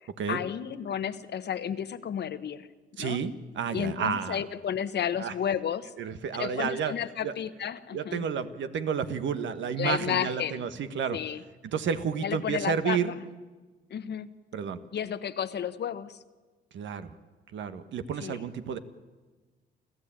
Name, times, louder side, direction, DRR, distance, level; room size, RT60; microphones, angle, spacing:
voice 1, 0.3-2.7 3.0-3.2 3.7-5.9 6.3-8.2 9.8-10.7 11.1-11.4 12.2-13.2 13.9-14.3 14.9-16.2 18.2-18.4, left 9 dB, 60° left, 13 dB, 1.2 m, -32 dB
voice 2, 3.0-4.4 5.2-5.3 6.0-6.9 7.2-7.3 7.9-11.2 11.6-13.1 14.5-14.8 16.7-17.1 17.5-18.8, right 7 dB, 70° right, 10 dB, 1.5 m, -31 dB
29.0 x 14.0 x 8.9 m, 1.3 s
cardioid pair, 90°, 20 cm